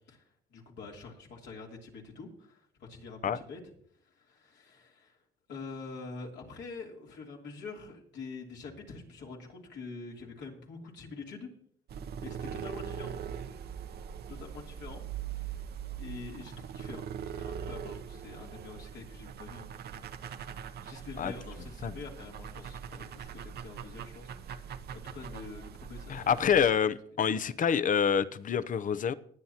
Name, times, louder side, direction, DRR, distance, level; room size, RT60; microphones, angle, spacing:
voice 1, 0.5-3.6 4.1-5.2 5.5-11.5 12.2-13.2 14.3-15.0 15.4-15.7 16.0-19.7 20.8-26.4, left 4 dB, 75° left, 3.1 m, -46 dB
sound 1, 11.9-26.7, right 8 dB, 60° right, 0.8 m, -42 dB
voice 2, 26.1-29.1, left 7 dB, 45° left, 0.7 m, -27 dB
19.5 x 9.3 x 2.9 m
cardioid pair, 80°, 19 cm